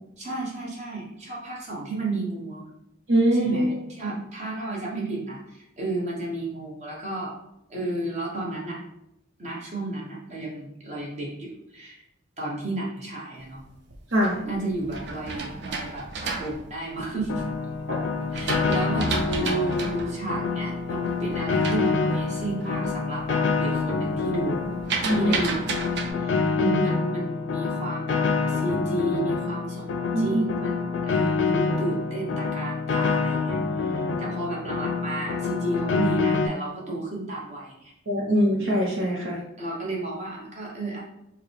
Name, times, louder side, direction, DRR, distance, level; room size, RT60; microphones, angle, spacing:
voice 1, 0.2-2.7 3.3-7.3 7.7-8.8 9.4-12.0 12.4-13.6 14.4-17.4 18.3-24.7 25.1-28.2 28.5-37.9 39.6-41.0, right 2 dB, 35° right, -3 dB, 1.0 m, -32 dB
voice 2, 3.1-3.6 14.1-14.4 17.9-18.0 25.0-25.3 26.6-26.7 30.1-30.4 38.1-39.4, equal, 80° right, -5 dB, 0.8 m, -23 dB
sound 1, 13.7-17.5 18.0-22.8 23.2-23.6 23.9-26.1, right 4 dB, 55° right, 0.5 m, -32 dB
Piano, 17.3-36.5, left 4 dB, 65° left, 0.3 m, -27 dB
4.7 x 2.2 x 3.2 m, 0.83 s
head